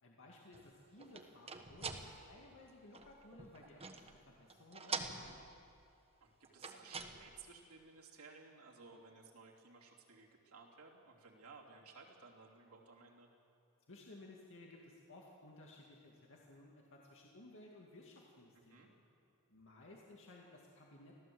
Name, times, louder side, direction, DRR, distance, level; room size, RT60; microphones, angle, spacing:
voice 1, 0.0-5.4 13.9-19.0 19.5-21.1, left 2 dB, 60° left, -2 dB, 2.2 m, -58 dB
sound 1, 0.5-4.2 4.5-5.8 6.4-7.5, right 4 dB, 25° right, 1.3 m, -46 dB
voice 2, 6.2-13.3 18.5-18.9, right 4 dB, 70° right, -2 dB, 3.1 m, -58 dB
25.0 x 16.0 x 7.8 m, 2.6 s
head